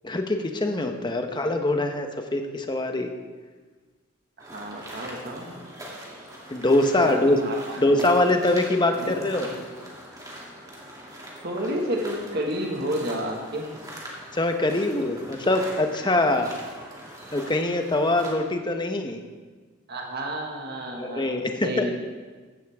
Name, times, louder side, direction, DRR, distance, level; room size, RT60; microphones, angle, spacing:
voice 1, 0.0-3.1 6.5-7.4 7.8-9.5 14.3-16.5 17.3-19.2 20.9-21.8, left 2 dB, 20° left, 5 dB, 1.0 m, -23 dB
sound 1, 4.4-18.3, equal, 15° right, 2.6 m, -42 dB
voice 2, 4.4-5.7 7.0-8.1 9.0-9.7 11.4-13.7 19.9-21.9, right 1 dB, 50° right, 1 dB, 1.8 m, -31 dB
15.0 x 12.0 x 3.6 m, 1.4 s
head